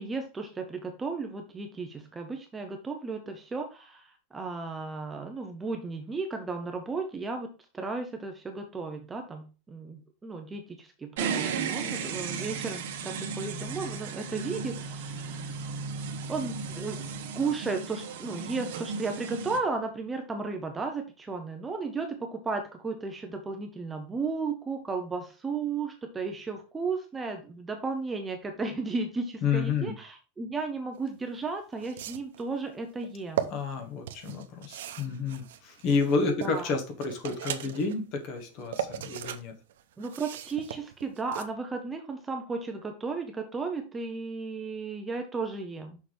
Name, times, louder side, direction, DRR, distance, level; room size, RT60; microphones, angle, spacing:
voice 1, 0.0-15.6 16.3-17.0 17.3-33.5 36.4-36.7 40.0-46.0, right 4 dB, 10° right, 5 dB, 0.6 m, -34 dB
sound 1, 11.2-19.6, right 5 dB, 65° right, 1.4 m, -35 dB
voice 2, 29.4-29.9 33.5-39.5, left 4 dB, 35° left, 6 dB, 1.3 m, -30 dB
sound 2, 31.1-31.2 31.8-32.4 33.0-33.5 34.1-36.6 37.0-37.9 38.4-39.4 39.7-41.4, right 10 dB, 80° right, 0.8 m, -37 dB
6.3 x 5.7 x 3.4 m, 0.33 s
supercardioid pair, 180°, 0 cm